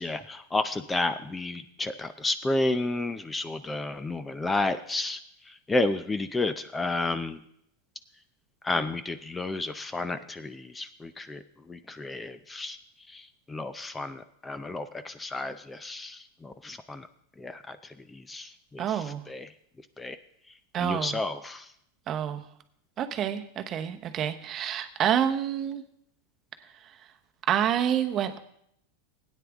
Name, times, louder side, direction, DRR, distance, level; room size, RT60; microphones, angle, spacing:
voice 1, 0.0-7.4 8.6-12.8 13.1-17.1 17.4-19.5 20.0-20.2 20.8-21.7, left 2 dB, 10° left, 12 dB, 0.5 m, -32 dB
voice 2, 18.8-19.2 20.7-21.2 22.1-22.4 23.0-25.8 26.8-26.9 27.5-28.4, right 9 dB, 35° right, 8 dB, 0.9 m, -28 dB
16.5 x 9.3 x 3.5 m, 0.73 s
supercardioid pair, 135°, 0 cm